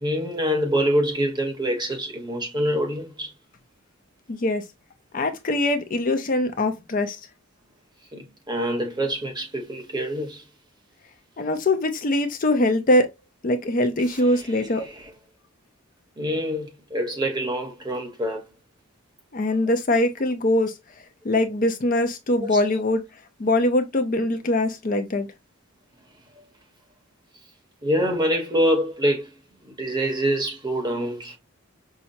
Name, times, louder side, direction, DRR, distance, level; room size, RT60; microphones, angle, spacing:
voice 1, 0.0-3.3 8.1-10.5 14.0-15.1 16.2-18.5 22.4-22.6 27.8-29.3 29.6-31.4, equal, 20° right, 0.9 m, -26 dB
voice 2, 4.3-4.6 5.1-7.2 11.4-13.1 13.4-14.9 19.3-20.7 21.2-23.0 23.4-25.3, left 1 dB, 40° left, 0.5 m, -22 dB
5.7 x 2.0 x 2.6 m
head